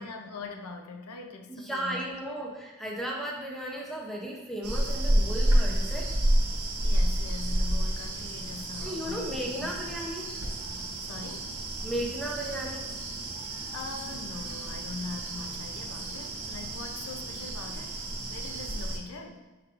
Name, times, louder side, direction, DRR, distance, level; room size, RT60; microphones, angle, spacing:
voice 1, 0.0-2.0 6.8-9.7 11.0-11.5 13.7-19.5, left 3 dB, 80° left, 4 dB, 0.5 m, -42 dB
voice 2, 1.5-6.1 6.5-6.6 8.8-10.3 11.8-12.9, right 1 dB, ahead, -2 dB, 0.5 m, -35 dB
sound 1, 4.6-19.0, right 1 dB, 80° right, 0.9 m, -30 dB
4.7 x 4.5 x 2.5 m, 1.2 s
head